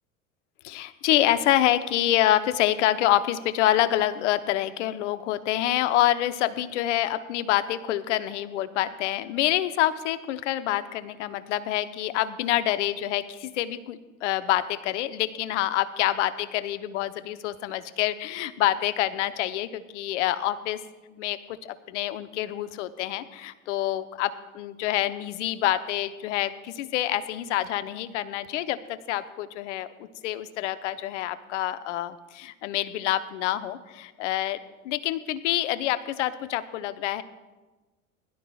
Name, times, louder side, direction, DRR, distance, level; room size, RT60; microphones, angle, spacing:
voice 1, 0.6-20.8 21.1-34.6 34.8-37.2, left 13 dB, 60° left, 13 dB, 0.8 m, -27 dB
20.5 x 12.0 x 2.3 m, 1.2 s
figure-of-eight pair, 80°, 41 cm